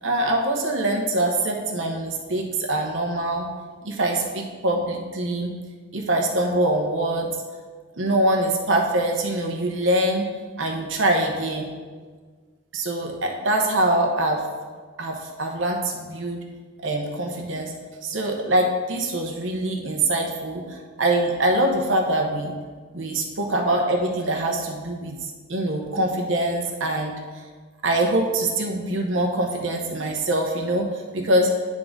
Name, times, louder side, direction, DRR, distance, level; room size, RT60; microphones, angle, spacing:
voice 1, 0.0-3.5 3.8-5.5 5.9-7.3 8.0-10.2 10.6-11.7 12.7-14.4 15.0-16.4 16.8-17.7 18.0-22.5 22.9-27.1 27.8-30.9 31.1-31.5, right 1 dB, 75° right, 1 dB, 1.0 m, -24 dB
10.0 x 3.8 x 3.7 m, 1.5 s
head